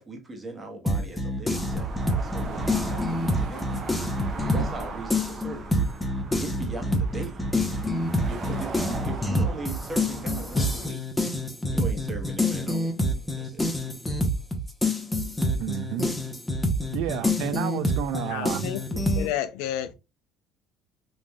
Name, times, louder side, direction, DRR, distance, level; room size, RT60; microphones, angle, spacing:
voice 1, 0.0-3.8 4.5-5.8 6.4-7.4 8.3-11.3 11.7-13.0 13.4-13.6, right 2 dB, 25° right, 1.0 m, -38 dB
sound 1, 0.9-4.8 5.1-19.3, left 1 dB, 10° left, 0.7 m, -27 dB
sound 2, 1.5-10.9, right 3 dB, 50° right, 0.7 m, -37 dB
voice 2, 15.6-16.1 16.9-18.7, right 10 dB, 75° right, 0.3 m, -30 dB
voice 3, 18.1-19.9, left 11 dB, 80° left, 0.4 m, -31 dB
3.2 x 2.4 x 2.2 m
supercardioid pair, 85°, 0 cm